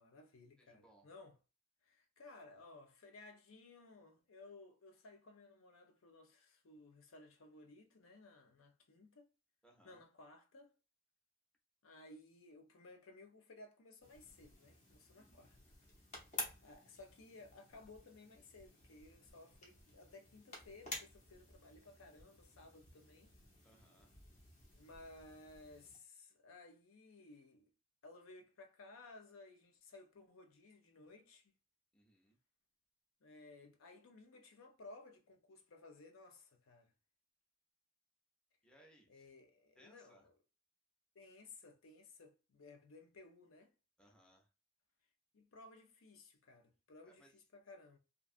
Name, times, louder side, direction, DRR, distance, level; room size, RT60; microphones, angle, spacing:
voice 1, 0.0-1.4 1.8-9.3 9.8-10.7 11.8-15.6 16.6-23.3 24.7-27.7 28.0-31.5 33.2-36.9 39.1-40.4 41.1-43.7 45.3-48.0, left 2 dB, 85° left, 0.6 m, -58 dB
voice 2, 0.6-1.1 9.6-10.0 15.1-15.5 23.6-24.2 31.9-32.4 38.6-39.3 39.8-40.3 44.0-44.5 47.0-47.3, right 1 dB, 5° left, 0.5 m, -67 dB
sound 1, 14.0-26.0, left 2 dB, 35° left, 0.8 m, -52 dB
2.6 x 2.2 x 2.4 m
head